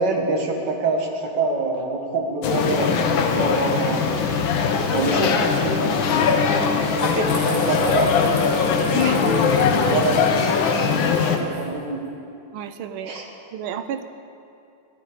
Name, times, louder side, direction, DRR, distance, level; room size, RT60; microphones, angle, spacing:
voice 1, 0.0-2.9 3.3-4.2 4.9-5.9 6.5-6.7 7.0-8.1 9.1-10.4 11.3-12.0 13.0-13.3, right 3 dB, 55° right, 1 dB, 2.0 m, -25 dB
sound 1, 2.4-11.4, left 5 dB, 75° left, 1.6 m, -21 dB
sound 2, 7.3-11.7, right 1 dB, 25° right, 3.0 m, -36 dB
voice 2, 12.5-13.1 13.5-14.0, right 9 dB, 80° right, 10 dB, 1.5 m, -31 dB
14.0 x 12.0 x 5.0 m, 2.6 s
omnidirectional pair, 2.3 m